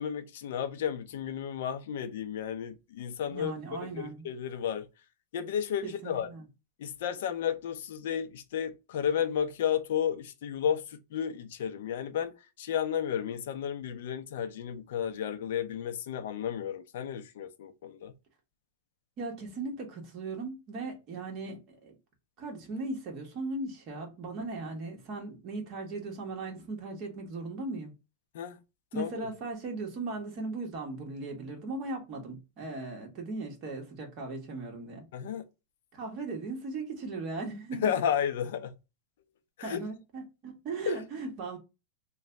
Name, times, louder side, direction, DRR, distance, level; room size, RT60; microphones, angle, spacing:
voice 1, 0.0-3.5 3.8-4.9 5.3-6.3 6.8-18.1 28.3-28.6 29.0-29.3 35.1-35.4 37.8-38.8 39.6-39.8 40.9-41.0, left 8 dB, 75° left, 0.6 m, -32 dB
voice 2, 3.3-4.2 5.8-6.5 19.2-21.9 22.4-27.9 28.9-35.1 35.9-37.9 39.6-41.6, right 3 dB, 40° right, 1.3 m, -38 dB
3.1 x 2.2 x 3.9 m
supercardioid pair, 150°, 0 cm